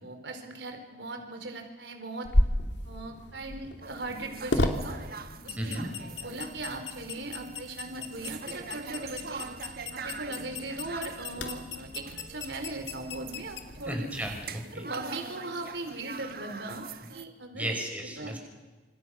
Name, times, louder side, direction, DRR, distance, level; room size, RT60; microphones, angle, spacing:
voice 1, 0.0-2.3 2.8-5.0 5.4-9.5 9.9-14.0 14.7-17.6 18.2-18.4, right 2 dB, 75° right, 5 dB, 4.6 m, -39 dB
sound 1, 2.2-14.5, left 1 dB, 70° left, 2.7 m, -34 dB
sound 2, 3.8-17.2, right 4 dB, 55° right, 1.5 m, -44 dB
voice 2, 5.6-5.9 13.9-14.9 17.5-18.4, right 1 dB, 10° right, 2 dB, 5.9 m, -34 dB
28.5 x 27.0 x 6.6 m, 1.3 s
head